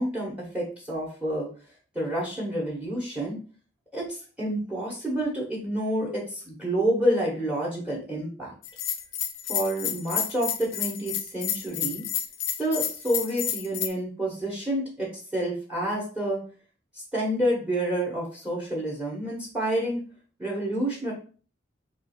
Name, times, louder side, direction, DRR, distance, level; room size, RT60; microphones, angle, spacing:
voice 1, 0.0-1.5 1.9-3.4 3.9-8.5 9.5-12.0 12.6-16.4 17.1-20.0 20.4-21.1, right 1 dB, 5° right, -2 dB, 1.1 m, -28 dB
Bell, 8.6-13.9, left 10 dB, 90° left, 0.5 m, -30 dB
3.7 x 2.4 x 4.2 m, 0.39 s
head